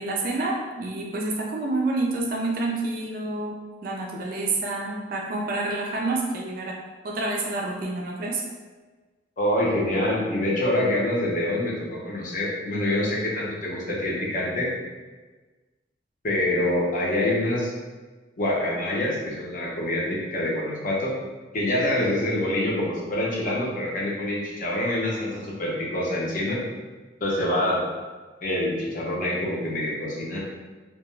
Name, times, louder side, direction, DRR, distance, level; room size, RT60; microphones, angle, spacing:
voice 1, 0.0-6.8 7.0-8.4, right 2 dB, 50° right, -1 dB, 0.3 m, -28 dB
voice 2, 9.4-14.7 16.2-17.7 18.4-21.1 21.5-26.6 27.2-27.8 28.4-30.4, left 1 dB, 45° left, -4 dB, 0.6 m, -26 dB
2.3 x 2.2 x 3.0 m, 1.3 s
head